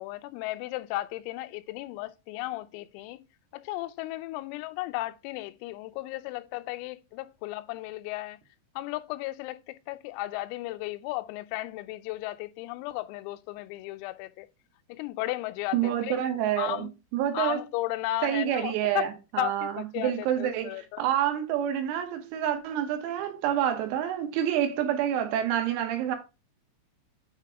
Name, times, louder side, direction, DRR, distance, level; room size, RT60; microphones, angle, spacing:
voice 1, 0.0-3.3 3.5-8.4 8.8-14.5 14.9-16.2 16.6-16.9 17.3-19.1 19.4-21.0, left 17 dB, 85° left, 3.3 m, -35 dB
voice 2, 15.7-17.6 18.2-26.2, right 10 dB, 90° right, 4.0 m, -28 dB
9.0 x 3.5 x 4.7 m
omnidirectional pair, 6.0 m